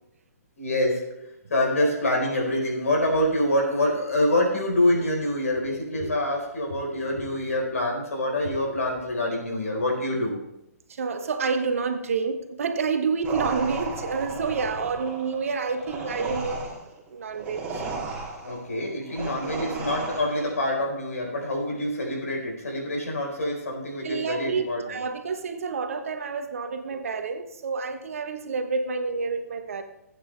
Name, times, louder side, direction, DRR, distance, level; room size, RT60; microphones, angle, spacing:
voice 1, 0.6-1.1 1.5-10.4 18.4-25.1, left 1 dB, 70° left, 0 dB, 4.3 m, -26 dB
voice 2, 10.9-16.6 17.1-18.0 24.0-29.8, right 5 dB, 60° right, 7 dB, 1.4 m, -29 dB
sound 1, 13.2-20.6, right 3 dB, 15° right, 3.0 m, -34 dB
16.0 x 8.9 x 3.4 m, 0.88 s
figure-of-eight pair, 125°, 8 cm